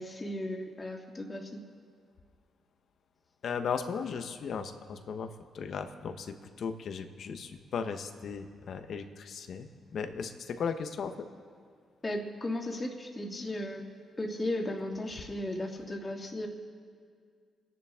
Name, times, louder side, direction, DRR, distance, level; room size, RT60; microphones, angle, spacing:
voice 1, 0.0-1.6 12.0-13.8 14.2-16.5, left 1 dB, 25° left, 1 dB, 2.4 m, -35 dB
voice 2, 3.4-5.3 5.5-11.3, left 6 dB, 65° left, 7 dB, 1.2 m, -36 dB
27.5 x 11.0 x 3.7 m, 2.1 s
cardioid pair, 70°, 0 cm